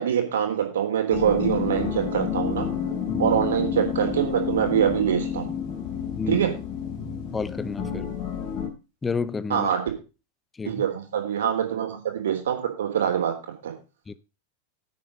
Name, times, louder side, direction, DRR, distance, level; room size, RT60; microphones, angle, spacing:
voice 1, 0.0-2.7 3.2-5.5 6.3-6.5 9.5-9.8 10.6-13.3 13.6-13.7, right 9 dB, 60° right, 3.2 m, -24 dB
sound 1, 1.1-8.7, left 7 dB, 40° left, 4.2 m, -30 dB
voice 2, 7.3-8.1 9.0-9.7 10.6-10.8 14.1-14.2, left 4 dB, 15° left, 0.7 m, -30 dB
10.0 x 8.5 x 5.3 m
figure-of-eight pair, 90°, 0 cm